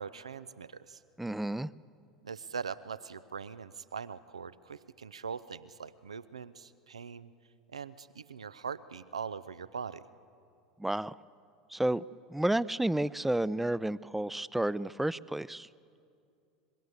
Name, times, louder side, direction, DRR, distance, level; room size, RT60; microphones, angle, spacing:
voice 1, 0.0-1.0 2.2-7.3 7.7-10.0, right 6 dB, 80° right, 17 dB, 0.7 m, -41 dB
voice 2, 1.2-1.7 10.8-11.1 11.7-12.0 12.3-15.7, right 1 dB, 5° right, 20 dB, 0.5 m, -31 dB
26.0 x 22.0 x 8.2 m, 2.5 s
figure-of-eight pair, 75°, 3 cm